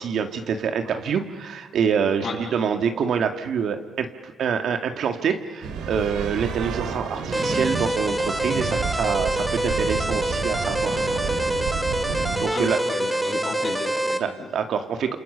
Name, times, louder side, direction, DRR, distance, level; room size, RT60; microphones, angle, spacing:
voice 1, 0.0-11.2 12.4-12.8 14.2-15.2, right 7 dB, 65° right, 6 dB, 2.0 m, -26 dB
sound 1, 5.6-12.5, right 6 dB, 90° right, 3.1 m, -30 dB
sound 2, 7.3-14.2, right 1 dB, 10° right, 2.5 m, -26 dB
voice 2, 12.5-14.5, left 4 dB, 55° left, -1 dB, 7.6 m, -33 dB
29.5 x 27.5 x 6.8 m, 1.4 s
cardioid pair, 90°, 0 cm